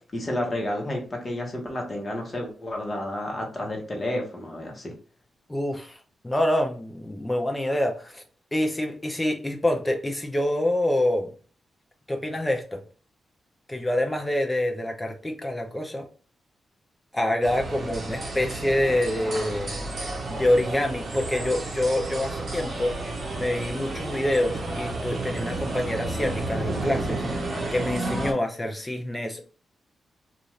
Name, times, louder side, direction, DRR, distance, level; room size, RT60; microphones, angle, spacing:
voice 1, 0.1-4.9, left 1 dB, 30° left, 0 dB, 1.2 m, -31 dB
voice 2, 5.5-8.2 8.5-11.3 12.1-12.8 13.7-16.0 17.1-19.7 20.3-22.9 23.4-29.4, left 1 dB, 15° left, 4 dB, 0.6 m, -26 dB
sound 1, 17.4-28.3, right 2 dB, 45° right, 0.9 m, -31 dB
2.6 x 2.5 x 3.2 m, 0.41 s
cardioid pair, 95°, 0 cm